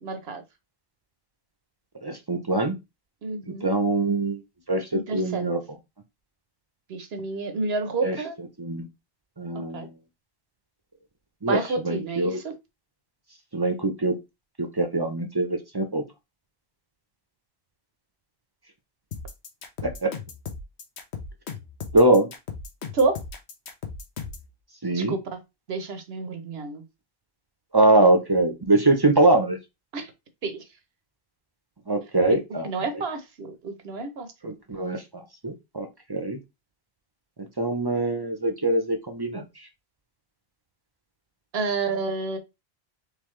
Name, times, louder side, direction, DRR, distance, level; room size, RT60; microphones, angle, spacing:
voice 1, 0.0-0.4 3.2-3.7 4.9-5.5 6.9-8.3 9.5-9.9 11.5-12.5 22.9-23.2 24.9-25.4 25.7-26.8 29.9-30.1 30.4-30.6 32.3-32.4 32.6-34.5 41.5-42.4, right 3 dB, 75° right, 1.1 m, -29 dB
voice 2, 2.0-2.7 3.6-4.4 4.7-5.6 8.0-8.2 8.6-8.9 9.4-9.9 11.4-11.6 11.8-12.4 13.5-14.1 14.6-16.0 19.8-20.1 21.9-22.3 24.8-25.1 27.7-29.6 31.9-32.7 34.4-35.0 35.4-36.4 37.6-39.4, right 2 dB, 25° right, 0.6 m, -22 dB
sound 1, 19.1-24.5, left 5 dB, 85° left, 1.1 m, -37 dB
4.0 x 3.5 x 3.1 m
omnidirectional pair, 1.1 m